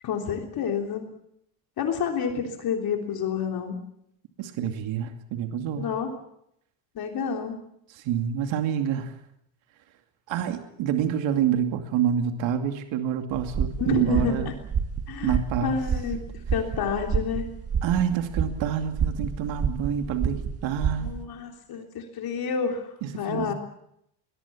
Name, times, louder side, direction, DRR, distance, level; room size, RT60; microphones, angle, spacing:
voice 1, 0.0-1.1 1.8-3.8 5.8-6.1 7.0-7.6 13.8-14.5 15.1-17.5 21.0-23.5, left 6 dB, 50° left, 3 dB, 3.4 m, -29 dB
voice 2, 4.4-5.9 7.9-9.1 10.3-14.5 15.2-15.8 17.8-21.1 23.0-23.5, right 9 dB, 70° right, 6 dB, 2.6 m, -27 dB
sound 1, 13.3-21.2, right 6 dB, 30° right, 1.5 m, -29 dB
23.5 x 21.0 x 7.3 m, 0.76 s
cardioid pair, 170°, 47 cm